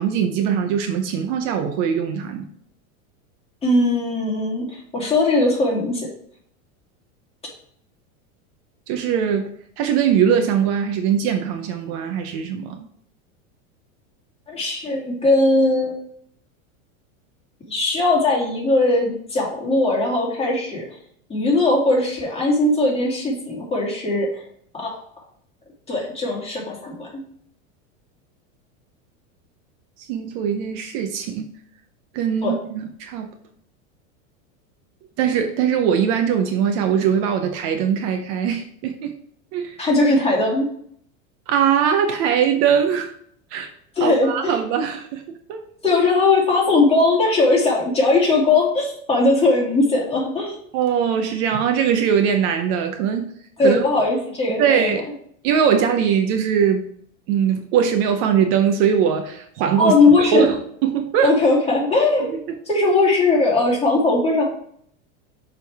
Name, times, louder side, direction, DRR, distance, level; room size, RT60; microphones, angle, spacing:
voice 1, 0.0-2.5 8.9-9.5 9.8-12.9 30.0-31.5 32.1-33.3 35.2-39.1 39.5-39.8 41.5-43.1 43.5-43.7 44.0-45.2 45.5-45.6 50.7-53.3 53.6-53.8 54.6-55.1 55.4-56.8 57.3-61.3 62.2-62.6, right 7 dB, 50° right, 6 dB, 0.8 m, -21 dB
voice 2, 3.6-6.1 14.5-15.9 17.7-20.9 21.3-24.4 24.7-25.0 25.9-27.2 32.4-32.5 39.8-40.7 44.0-44.5 45.8-50.6 53.6-54.9 59.8-60.5 61.2-62.3 62.7-64.4, left 2 dB, 15° left, -3 dB, 2.5 m, -19 dB
6.7 x 3.8 x 4.7 m, 0.64 s
supercardioid pair, 135°, 41 cm